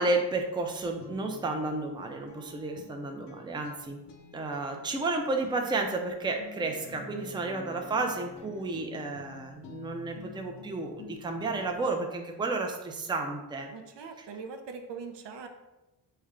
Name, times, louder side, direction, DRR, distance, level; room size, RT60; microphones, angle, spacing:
voice 1, 0.0-4.0 4.3-13.7, right 3 dB, 10° right, 3 dB, 0.4 m, -32 dB
Guitar, 1.0-11.9, left 6 dB, 75° left, 0.5 m, -51 dB
sound 1, 6.6-9.0 10.7-10.8, equal, 35° right, 1.0 m, -47 dB
voice 2, 13.7-15.5, right 5 dB, 80° right, 6 dB, 0.5 m, -41 dB
3.3 x 2.2 x 3.6 m, 1.0 s
cardioid pair, 65°, 42 cm